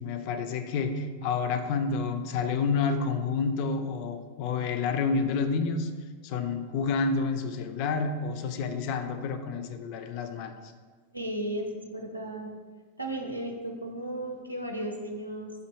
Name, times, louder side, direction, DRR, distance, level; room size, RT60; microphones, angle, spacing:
voice 1, 0.0-5.9 6.2-10.5, left 4 dB, 45° left, 7 dB, 0.3 m, -29 dB
voice 2, 11.1-12.5 13.0-15.5, right 1 dB, 85° right, 2 dB, 0.5 m, -35 dB
3.7 x 2.6 x 4.2 m, 1.5 s
figure-of-eight pair, 90°, 0 cm